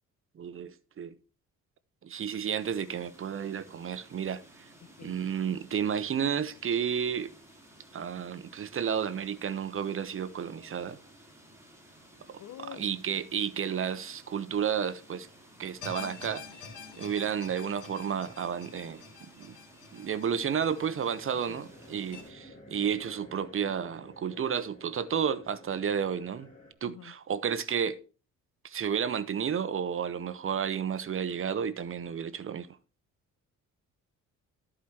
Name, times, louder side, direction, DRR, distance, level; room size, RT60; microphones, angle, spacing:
voice 1, 0.4-1.1 2.0-4.7 5.0-7.3 7.9-11.0 12.3-12.4 12.8-15.3 15.6-16.4 17.0-19.6 19.9-26.5 26.8-28.0 28.6-32.7, right 7 dB, 45° right, 0.8 m, -32 dB
sound 1, 2.6-22.3, right 1 dB, 10° right, 3.5 m, -56 dB
voice 2, 4.8-5.2 12.4-13.0 21.3-21.6 26.8-27.1, left 11 dB, 65° left, 0.9 m, -47 dB
sound 2, 15.8-22.2, left 6 dB, 85° left, 2.3 m, -47 dB
sound 3, 20.4-26.7, left 1 dB, 25° left, 3.8 m, -52 dB
13.0 x 5.0 x 4.3 m
cardioid pair, 90°, 30 cm